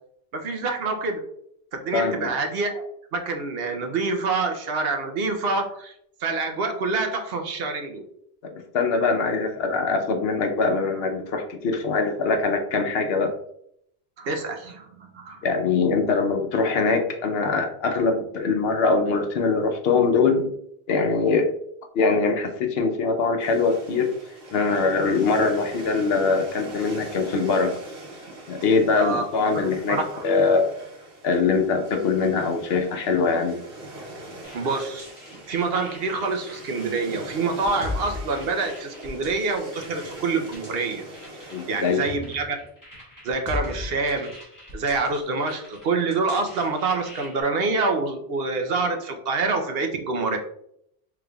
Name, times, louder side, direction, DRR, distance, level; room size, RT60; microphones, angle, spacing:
voice 1, 0.3-1.2 1.7-2.8 3.1-5.9 6.2-8.0 14.2-15.4 29.0-29.3 29.9-30.2 34.5-35.1 35.5-41.0 41.4-42.6 43.2-44.3 44.7-50.4, right 3 dB, 70° right, 5 dB, 0.9 m, -26 dB
voice 2, 1.9-2.3 8.7-13.3 15.4-20.5 20.9-21.5 21.9-24.1 24.5-27.7 28.5-30.0 30.2-30.7 31.2-33.6 41.5-42.0, left 4 dB, 75° left, 4 dB, 0.9 m, -22 dB
sound 1, 23.4-42.1, right 1 dB, 90° right, 1.8 m, -42 dB
sound 2, 34.4-47.4, left 2 dB, 20° left, 1.3 m, -40 dB
5.0 x 3.5 x 2.3 m, 0.72 s
omnidirectional pair, 1.0 m